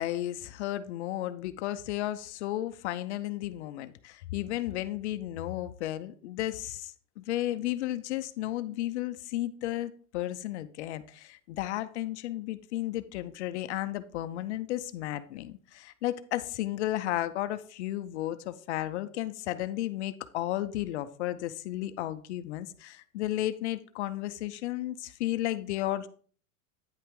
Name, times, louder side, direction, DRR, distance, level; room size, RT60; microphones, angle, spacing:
voice 1, 0.0-26.1, left 14 dB, 50° left, 0.6 m, -33 dB
9.3 x 5.7 x 3.6 m
supercardioid pair, 170°, 45 cm